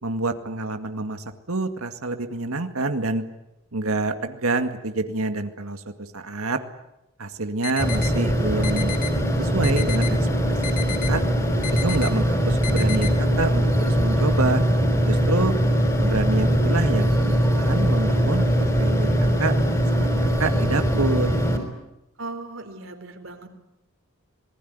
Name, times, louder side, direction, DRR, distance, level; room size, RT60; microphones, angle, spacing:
voice 1, 0.0-3.2 3.7-5.8 6.1-6.6 7.2-8.9 9.4-10.2 10.5-11.2 11.8-14.6 15.1-15.5 16.0-18.4 18.8-19.5 20.0-21.4, right 2 dB, 85° right, 7 dB, 2.1 m, -27 dB
sound 1, 7.6-8.1 8.6-9.1 9.6-10.1 10.6-11.1 11.6-12.1 12.6-13.1, left 9 dB, 35° left, 2.3 m, -32 dB
sound 2, 7.8-21.6, equal, 15° left, 5.0 m, -21 dB
voice 2, 22.2-23.5, right 3 dB, 65° right, 6 dB, 4.1 m, -37 dB
26.5 x 20.5 x 9.6 m, 0.89 s
head